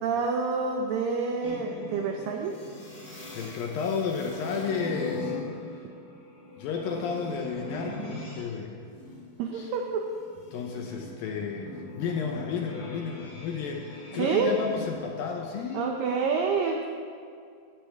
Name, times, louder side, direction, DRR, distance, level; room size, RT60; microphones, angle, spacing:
voice 1, 0.0-2.6 9.4-10.1 14.1-14.6 15.7-16.8, right 5 dB, 85° right, 3 dB, 2.0 m, -28 dB
sound 1, 1.4-8.4 8.8-15.6, left 2 dB, 50° left, 4.6 m, -41 dB
voice 2, 3.1-5.3 5.7-5.8 6.6-8.7 9.5-9.7 10.5-16.0, left 5 dB, 75° left, 1 dB, 2.3 m, -32 dB
14.5 x 11.5 x 3.5 m, 2.3 s
omnidirectional pair, 4.8 m